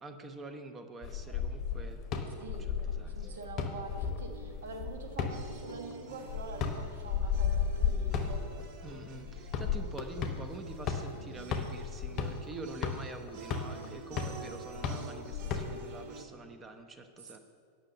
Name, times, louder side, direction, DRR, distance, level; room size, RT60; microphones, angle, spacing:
voice 1, 0.0-2.0 2.3-3.1 8.8-17.4, right 3 dB, 20° right, 8 dB, 0.9 m, -46 dB
sound 1, 1.0-16.0, left 6 dB, 30° left, 1.0 m, -34 dB
voice 2, 2.4-8.4 11.1-11.5 17.2-17.4, right 4 dB, 60° right, 3 dB, 1.4 m, -46 dB
sound 2, 4.0-16.3, right 4 dB, 45° right, 1.0 m, -49 dB
10.5 x 5.8 x 7.4 m, 2.1 s
figure-of-eight pair, 90°, 0 cm